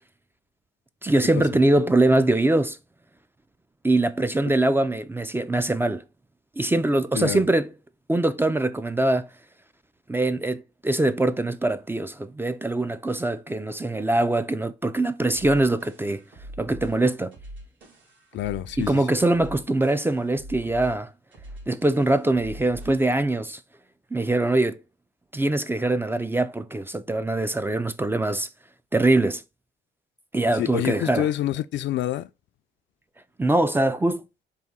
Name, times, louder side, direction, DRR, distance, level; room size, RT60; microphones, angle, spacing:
voice 1, 1.0-2.8 3.8-6.0 6.6-7.7 8.1-9.3 10.1-16.2 16.6-17.3 18.8-21.1 21.7-23.6 24.1-24.8 25.3-28.5 28.9-29.4 30.3-31.3 33.4-34.2, right 2 dB, 10° right, 0.3 m, -23 dB
sound 1, 15.3-23.1, right 1 dB, 65° right, 2.3 m, -43 dB
voice 2, 18.3-19.2 30.5-32.3, left 13 dB, 65° left, 0.4 m, -27 dB
4.1 x 2.7 x 3.6 m
cardioid pair, 90°, 20 cm